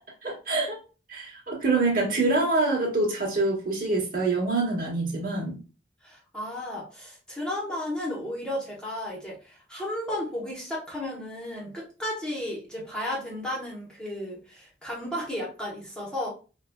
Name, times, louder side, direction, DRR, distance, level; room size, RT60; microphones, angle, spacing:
voice 1, 0.2-0.8 1.1-5.6, right 3 dB, 50° right, -2 dB, 1.3 m, -25 dB
voice 2, 6.0-16.3, left 1 dB, 5° left, -4 dB, 1.0 m, -34 dB
4.8 x 2.3 x 2.2 m, 0.35 s
head